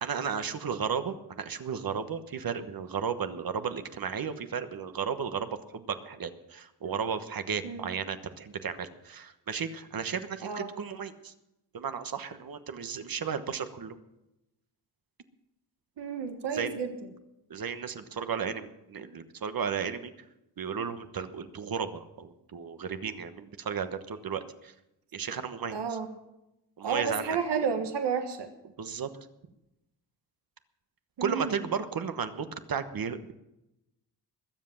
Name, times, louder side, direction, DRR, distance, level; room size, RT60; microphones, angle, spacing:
voice 1, 0.0-11.3 11.7-14.0 16.5-16.7 17.5-20.1 20.6-24.7 25.1-26.0 26.8-27.4 28.8-29.1 31.2-33.3, right 6 dB, 60° right, 9 dB, 1.2 m, -34 dB
voice 2, 16.0-16.9 25.7-26.1 26.8-28.5 31.2-31.5, right 6 dB, 85° right, 6 dB, 1.5 m, -31 dB
21.0 x 7.7 x 7.2 m, 0.92 s
cardioid pair, 90°, 40 cm